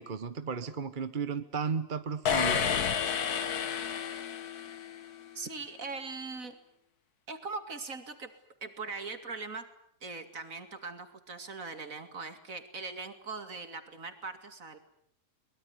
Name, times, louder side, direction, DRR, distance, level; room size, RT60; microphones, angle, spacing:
voice 1, 0.0-2.7, right 6 dB, 35° right, 12 dB, 1.1 m, -34 dB
sound 1, 2.2-5.1, left 7 dB, 70° left, 1.8 m, -30 dB
voice 2, 5.3-6.5 7.3-8.3 8.6-9.7 10.0-14.8, right 4 dB, 55° right, 9 dB, 2.8 m, -40 dB
23.0 x 21.5 x 9.7 m, 0.69 s
omnidirectional pair, 1.7 m